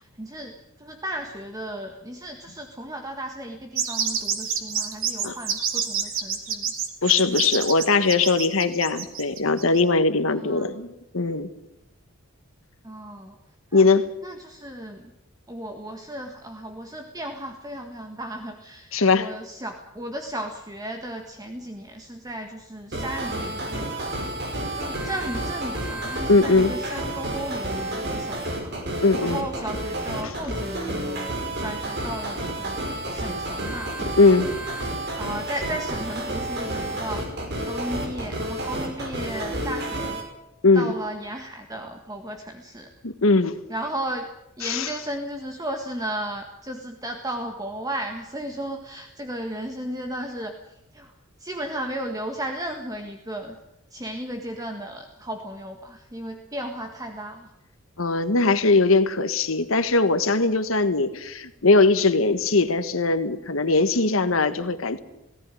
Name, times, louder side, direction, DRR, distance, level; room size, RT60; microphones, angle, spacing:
voice 1, 0.0-6.7 10.3-10.7 12.8-13.3 13.7-13.9 14.2-15.1 15.5-24.1 24.7-33.9 35.2-40.2 40.7-42.9 43.7-44.3 44.6-51.1 51.4-53.6 53.9-57.5, right 1 dB, 20° right, 4 dB, 1.7 m, -35 dB
sound 1, 3.7-9.8, right 7 dB, 80° right, 3.0 m, -28 dB
voice 2, 7.0-11.5 13.7-14.0 18.9-19.3 26.3-26.7 29.0-29.4 30.2-30.3 34.2-34.5 40.6-40.9 43.0-43.6 44.6-44.9 58.0-65.0, left 3 dB, 80° left, 10 dB, 1.5 m, -20 dB
sound 2, 22.9-40.2, right 1 dB, 55° right, 5.7 m, -30 dB
18.5 x 17.0 x 10.0 m, 0.87 s
head